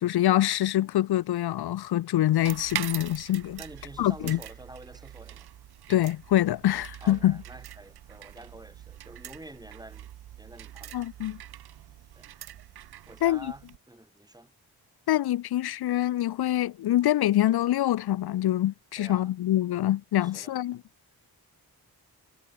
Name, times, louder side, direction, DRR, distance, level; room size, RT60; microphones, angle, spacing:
voice 1, 0.0-3.6 4.0-4.4 5.9-7.4 10.9-11.4 13.2-13.5 15.1-20.8, left 13 dB, 80° left, 0.6 m, -25 dB
sound 1, 2.4-13.8, right 12 dB, 80° right, 0.7 m, -42 dB
voice 2, 3.6-5.5 7.0-10.1 10.4-11.1 12.2-12.3 13.1-14.5 19.0-19.3 20.2-20.5, right 1 dB, 10° right, 2.2 m, -47 dB
cardioid pair, 65°, 38 cm